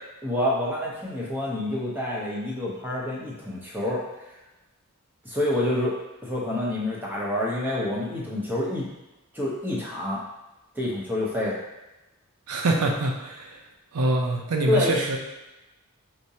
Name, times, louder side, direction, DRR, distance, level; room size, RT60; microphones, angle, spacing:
voice 1, 0.2-4.1 5.2-8.9 9.3-10.2 10.7-11.6 14.7-14.9, left 1 dB, 10° right, -6 dB, 0.7 m, -27 dB
voice 2, 12.5-13.6 13.9-15.2, right 2 dB, 85° right, 1 dB, 0.6 m, -25 dB
4.7 x 2.1 x 2.7 m, 1.0 s
head